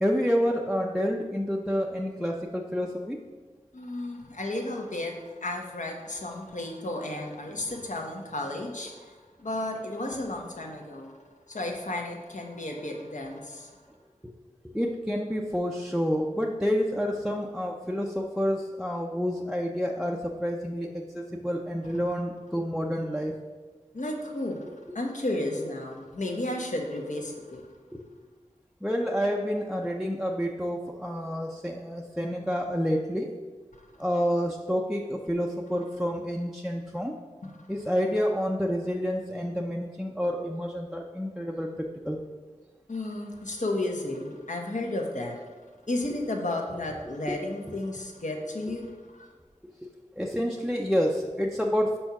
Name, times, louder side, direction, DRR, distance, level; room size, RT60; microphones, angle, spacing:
voice 1, 0.0-3.2 14.7-23.3 27.9-28.0 28.8-33.3 34.0-37.1 37.7-41.7 42.0-42.2 49.8-49.9 50.2-52.0, equal, 5° right, -1 dB, 0.5 m, -28 dB
voice 2, 3.7-11.1 11.5-13.7 21.8-22.0 23.9-24.6 24.9-27.6 37.4-37.7 42.9-45.4 45.9-49.3, left 1 dB, 70° left, 1 dB, 1.1 m, -33 dB
5.6 x 4.5 x 5.8 m, 1.4 s
wide cardioid pair, 50°, 13 cm